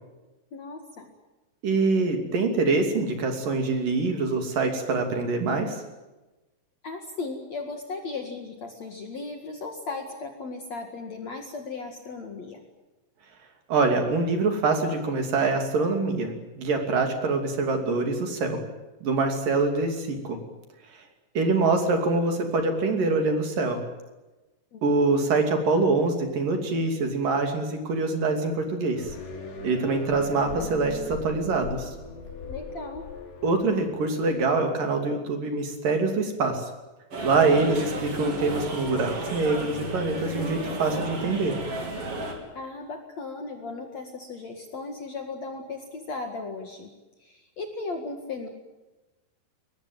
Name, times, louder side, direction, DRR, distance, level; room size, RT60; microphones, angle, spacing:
voice 1, 0.5-1.1 6.8-12.6 24.7-24.8 32.5-33.1 42.5-46.9 47.2-48.5, left 3 dB, 50° left, 4 dB, 2.5 m, -36 dB
voice 2, 1.6-5.8 13.7-18.6 19.0-20.4 21.4-23.8 24.8-29.0 29.6-31.9 33.4-36.7 37.2-41.5, right 3 dB, 50° right, 5 dB, 4.1 m, -25 dB
sound 1, 28.9-34.3, left 4 dB, 75° left, 6.3 m, -39 dB
sound 2, 37.1-42.3, right 1 dB, 35° right, 4.2 m, -33 dB
23.0 x 19.5 x 9.3 m, 1.1 s
omnidirectional pair, 5.2 m